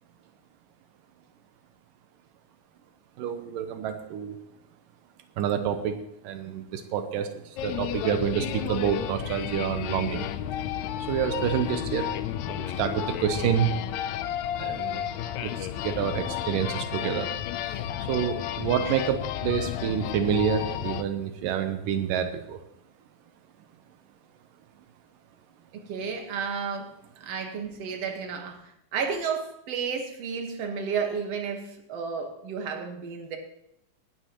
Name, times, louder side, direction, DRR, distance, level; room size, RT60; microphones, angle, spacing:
voice 1, 3.2-4.4 5.4-6.0 6.2-10.3 11.0-12.1 12.5-13.7 14.6-15.1 15.4-17.3 18.1-22.6, right 8 dB, 85° right, 7 dB, 2.5 m, -28 dB
sound 1, 7.6-21.0, left 11 dB, 75° left, 1.7 m, -32 dB
voice 2, 25.7-33.4, right 6 dB, 55° right, 4 dB, 2.3 m, -32 dB
18.5 x 13.5 x 3.0 m, 0.78 s
omnidirectional pair, 3.8 m